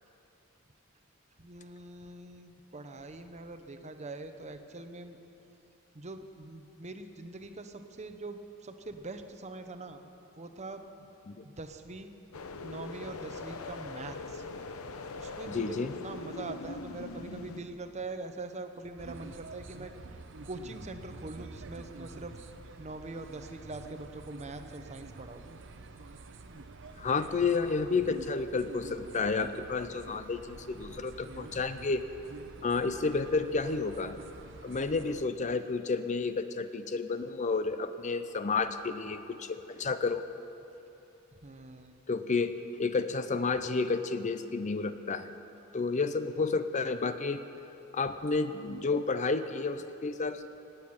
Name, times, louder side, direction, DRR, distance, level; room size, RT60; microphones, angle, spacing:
voice 1, 1.4-5.2 5.9-10.1 10.4-10.8 11.4-12.2 12.6-14.4 15.2-19.9 20.4-22.4 22.8-25.4 41.4-42.0, right 2 dB, 30° right, 8 dB, 0.8 m, -43 dB
sound 1, 12.3-17.6, left 3 dB, 80° left, 0.8 m, -41 dB
voice 2, 15.5-15.9 27.0-32.1 32.6-34.2 34.6-40.2 42.1-45.3 45.7-47.4 47.9-50.5, left 4 dB, 35° left, 10 dB, 0.5 m, -31 dB
sound 2, 19.0-35.2, right 3 dB, 60° right, 0.8 m, -48 dB
18.0 x 8.1 x 8.8 m, 3.0 s
head